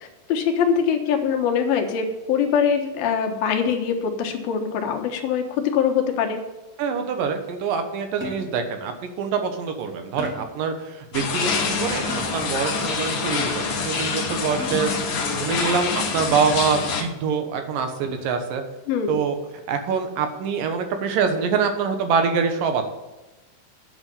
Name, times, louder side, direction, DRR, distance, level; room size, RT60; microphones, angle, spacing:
voice 1, 0.3-6.4 18.9-19.2, left 7 dB, 90° left, 3 dB, 3.1 m, -23 dB
voice 2, 6.8-18.6 19.1-19.4 19.7-22.8, right 5 dB, 75° right, 6 dB, 2.9 m, -25 dB
sound 1, 8.2-8.7 10.2-10.7 12.1-12.6 14.6-15.1 16.1-16.6 18.0-18.4, left 1 dB, 10° right, 0.5 m, -37 dB
sound 2, 11.1-17.0, left 5 dB, 60° left, 1.3 m, -26 dB
9.6 x 6.4 x 8.4 m, 1.1 s
omnidirectional pair, 4.1 m